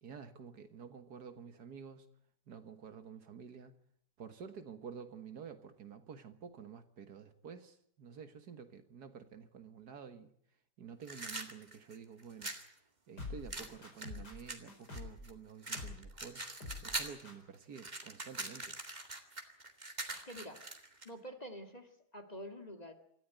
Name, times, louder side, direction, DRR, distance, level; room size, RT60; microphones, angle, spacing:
voice 1, 0.0-2.1 2.5-3.7 4.2-10.3 10.8-12.5 13.1-16.4 16.8-18.8, right 6 dB, 65° right, 10 dB, 1.9 m, -50 dB
sound 1, 11.0-12.7 13.5-15.3 15.6-17.2 17.5-21.1, right 2 dB, 25° right, 2.3 m, -42 dB
sound 2, 13.2-15.3 15.7-16.1 16.4-17.0 17.2-17.3, left 3 dB, 70° left, 5.4 m, -46 dB
voice 2, 20.1-20.6 21.0-22.9, equal, 25° left, 6 dB, 2.1 m, -48 dB
26.5 x 14.0 x 9.3 m, 0.70 s
omnidirectional pair, 1.9 m